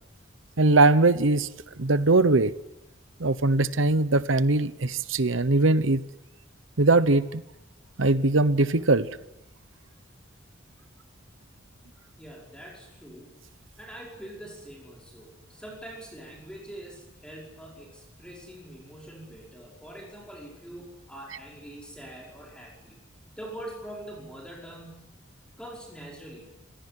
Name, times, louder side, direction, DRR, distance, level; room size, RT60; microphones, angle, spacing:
voice 1, 0.6-1.5 1.8-2.5 3.2-6.0 6.8-7.4 8.0-9.1, right 2 dB, 80° right, 15 dB, 1.0 m, -21 dB
voice 2, 12.2-13.4 13.8-23.0 23.4-25.2 25.6-26.5, right 1 dB, 5° left, -2 dB, 5.3 m, -44 dB
27.0 x 17.5 x 10.0 m, 0.89 s
head